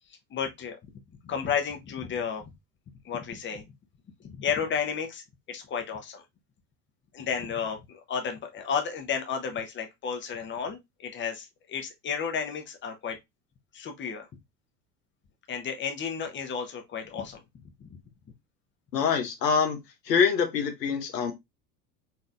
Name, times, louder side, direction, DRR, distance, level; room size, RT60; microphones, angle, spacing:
voice 1, 0.3-0.8 1.2-2.4 3.0-3.6 4.2-5.2 5.5-6.2 7.1-13.2 13.7-14.3 15.5-17.4 17.8-18.0, left 7 dB, 25° left, 0.9 m, -32 dB
voice 2, 18.9-19.8 20.1-21.3, left 6 dB, 80° left, 1.1 m, -25 dB
4.1 x 3.8 x 2.4 m
figure-of-eight pair, 75°, 48 cm